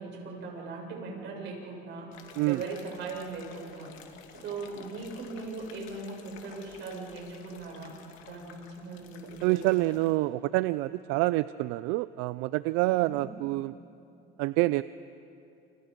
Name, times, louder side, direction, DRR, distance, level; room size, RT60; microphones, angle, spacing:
voice 1, 0.0-2.2 2.5-3.9 4.3-7.9 8.2-9.6 12.8-13.2, right 4 dB, 65° right, -1 dB, 7.0 m, -39 dB
sound 1, 2.1-10.2, left 7 dB, 80° left, 2.6 m, -52 dB
voice 2, 9.4-13.7 14.4-14.8, right 19 dB, 90° right, 16 dB, 0.5 m, -27 dB
29.5 x 28.5 x 5.3 m, 2.7 s
cardioid pair, 105°, 20 cm